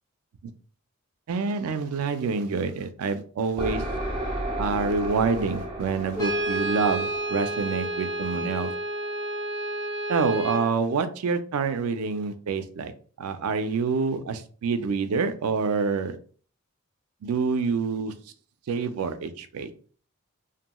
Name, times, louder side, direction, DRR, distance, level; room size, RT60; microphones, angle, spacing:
voice 1, 1.3-3.8 4.6-8.7 10.1-12.9 13.2-16.2 17.2-18.1 18.7-19.7, right 5 dB, 85° right, 10 dB, 0.4 m, -27 dB
sound 1, 3.6-9.2, right 1 dB, 25° right, 0.6 m, -34 dB
Brass instrument, 6.2-10.7, right 1 dB, 15° left, 0.6 m, -30 dB
2.9 x 2.6 x 2.2 m, 0.43 s
head